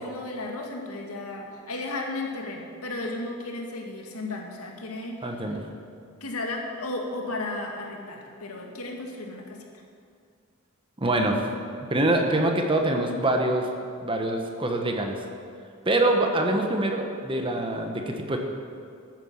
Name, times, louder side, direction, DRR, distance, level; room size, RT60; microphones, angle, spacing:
voice 1, 0.0-5.4 6.2-9.6, left 2 dB, 85° left, 1 dB, 2.1 m, -34 dB
voice 2, 5.2-5.6 11.0-11.4 11.9-13.7 14.0-15.2 15.8-18.4, right 1 dB, 25° right, 3 dB, 1.3 m, -24 dB
12.5 x 9.2 x 7.3 m, 2.3 s
head